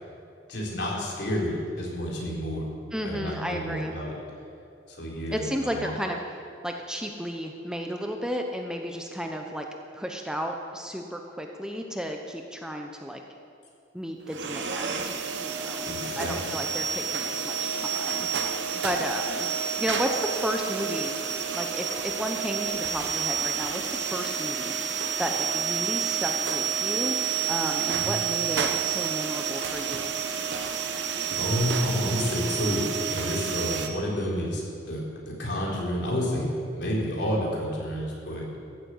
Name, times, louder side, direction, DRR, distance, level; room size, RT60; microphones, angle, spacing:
voice 1, 0.5-2.6 3.0-4.1 4.9-5.9 15.8-16.4 27.9-28.1 31.3-36.5 36.7-38.4, equal, 70° left, -3 dB, 3.7 m, -30 dB
voice 2, 2.9-3.9 5.3-6.2 6.6-9.6 9.9-13.2 13.9-19.5 19.8-21.1 21.5-30.1, equal, 5° right, 3 dB, 0.8 m, -33 dB
sound 1, 14.3-33.9, right 7 dB, 75° right, 1.0 m, -29 dB
13.5 x 8.5 x 7.8 m, 2.5 s
head